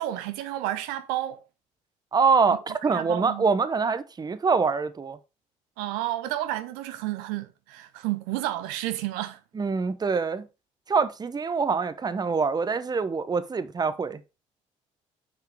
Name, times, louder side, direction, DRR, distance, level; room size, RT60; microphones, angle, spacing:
voice 1, 0.0-1.4 2.9-3.5 5.8-9.4, right 14 dB, 75° right, 0.5 m, -31 dB
voice 2, 2.1-5.2 9.5-10.5 10.9-14.2, right 5 dB, 25° right, 0.7 m, -25 dB
6.4 x 4.7 x 3.4 m
hypercardioid pair, 55°, 15 cm